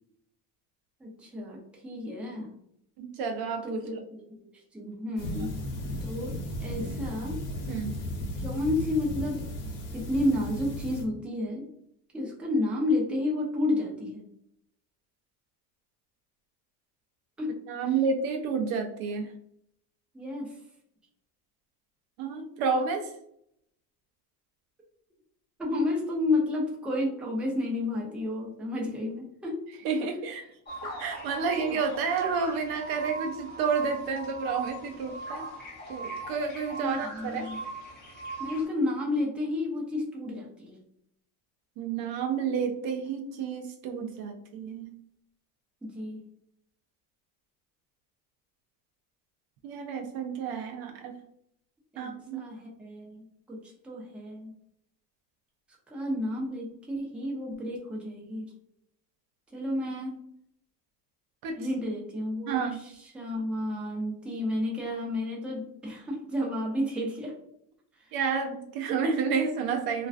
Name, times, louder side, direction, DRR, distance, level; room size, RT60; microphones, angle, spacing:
voice 1, 1.0-2.5 3.6-4.3 4.7-5.5 6.0-7.4 8.4-9.5 9.9-11.7 12.1-14.2 17.4-17.5 17.9-18.0 20.1-20.6 25.6-29.7 36.8-37.6 38.4-40.8 45.8-46.2 51.9-54.5 55.9-58.5 59.5-60.2 61.6-67.3 68.0-68.1, left 1 dB, 5° right, -3 dB, 0.5 m, -31 dB
voice 2, 3.0-4.0 7.7-7.9 17.7-19.3 22.2-23.1 29.8-30.4 30.8-35.5 35.9-37.5 41.8-44.9 49.6-51.2 52.0-52.4 61.4-61.6 62.5-62.8 68.1-70.1, right 5 dB, 55° right, 4 dB, 0.5 m, -30 dB
sound 1, 5.2-11.0, left 1 dB, 60° left, 0.9 m, -35 dB
sound 2, 30.7-38.6, right 2 dB, 20° left, 0.8 m, -40 dB
2.4 x 2.2 x 2.4 m, 0.72 s
supercardioid pair, 115°, 46 cm